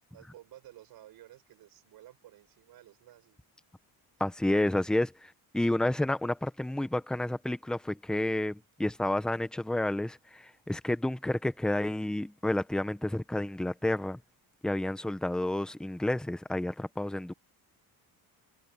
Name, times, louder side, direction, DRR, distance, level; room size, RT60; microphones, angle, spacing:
voice 1, 0.1-3.4 4.5-4.7, right 14 dB, 65° right, 7.2 m, -53 dB
voice 2, 4.2-14.2 14.6-17.3, left 1 dB, ahead, 0.8 m, -30 dB
cardioid pair, 170°, 38 cm